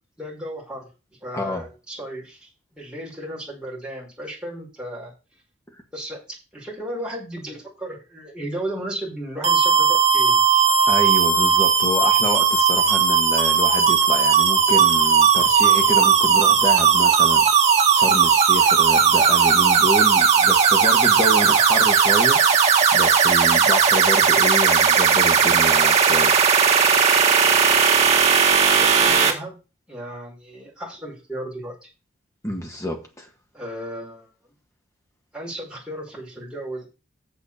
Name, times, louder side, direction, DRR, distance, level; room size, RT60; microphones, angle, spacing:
voice 1, 0.2-0.9 1.2-5.1 5.9-6.2 6.5-10.4 28.8-29.6 29.9-31.9 33.5-34.3 35.3-36.9, right 1 dB, 5° right, 5.3 m, -34 dB
voice 2, 1.3-1.7 10.9-17.5 17.9-26.3 32.4-33.3, equal, 15° left, 1.8 m, -28 dB
sound 1, 9.4-29.3, right 6 dB, 35° right, 2.0 m, -17 dB
7.1 x 6.9 x 7.1 m
head